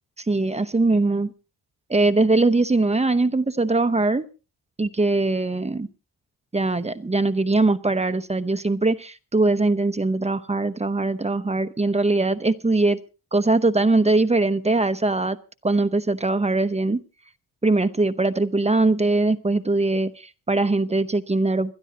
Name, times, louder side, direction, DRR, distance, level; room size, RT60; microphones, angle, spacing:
voice 1, 0.3-1.3 1.9-4.3 4.8-5.9 6.5-13.0 13.3-15.4 15.6-17.0 17.6-21.7, right 2 dB, 15° right, 0.8 m, -21 dB
27.0 x 12.5 x 2.9 m
cardioid pair, 95°, 40 cm